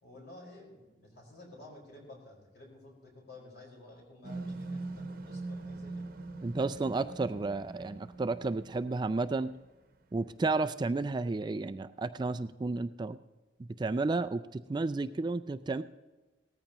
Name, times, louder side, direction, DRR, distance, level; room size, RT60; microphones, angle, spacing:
voice 1, 0.0-6.1, left 2 dB, 65° left, -2 dB, 5.0 m, -52 dB
sound 1, 4.2-9.5, right 2 dB, 55° right, 0.9 m, -42 dB
voice 2, 6.4-9.5 10.1-13.2 13.6-15.8, right 3 dB, 25° right, 11 dB, 0.3 m, -32 dB
18.0 x 14.0 x 3.0 m, 1.2 s
head